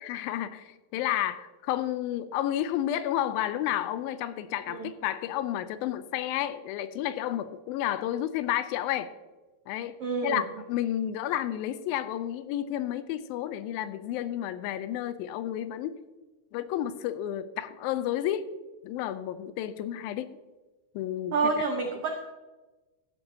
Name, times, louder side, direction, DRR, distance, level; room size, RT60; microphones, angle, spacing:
voice 1, 0.0-9.1 9.7-9.9 10.2-16.0 16.5-18.5 18.8-20.4 21.0-21.3, left 12 dB, 90° left, 13 dB, 2.4 m, -31 dB
voice 2, 10.0-10.4 21.3-22.2, right 4 dB, 85° right, 3 dB, 1.3 m, -28 dB
14.0 x 11.5 x 2.8 m, 1.2 s
omnidirectional pair, 4.1 m